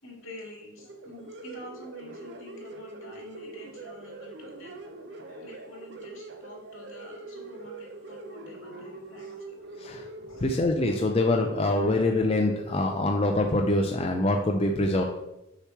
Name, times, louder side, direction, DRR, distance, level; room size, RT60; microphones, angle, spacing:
voice 1, 0.0-9.7 10.3-10.5 11.8-11.9, left 1 dB, 75° left, -1 dB, 2.1 m, -47 dB
sound 1, 0.8-14.5, right 2 dB, 55° right, 0.6 m, -43 dB
voice 2, 9.7-10.1 10.3-15.0, left 2 dB, 30° left, 2 dB, 0.4 m, -25 dB
6.7 x 3.1 x 5.9 m, 0.91 s
head